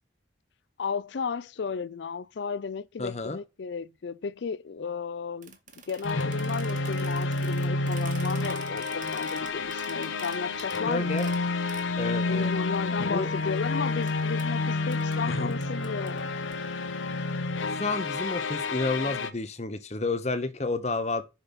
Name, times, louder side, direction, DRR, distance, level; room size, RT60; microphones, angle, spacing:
voice 1, 0.8-5.6 5.9-11.2 12.2-16.4, left 5 dB, 65° left, 0.4 m, -34 dB
voice 2, 3.0-3.4 10.9-11.3 12.0-12.5 13.0-13.3 15.3-15.5 17.7-21.2, left 3 dB, 35° left, 0.8 m, -30 dB
sound 1, 5.4-11.9 12.4-12.5 12.7-13.6 14.0-14.1 14.4-14.5 14.9-15.1 15.5-16.5, right 7 dB, 40° right, 1.4 m, -47 dB
sound 2, 6.0-19.3, left 3 dB, 85° left, 0.9 m, -29 dB
6.8 x 5.8 x 5.6 m
head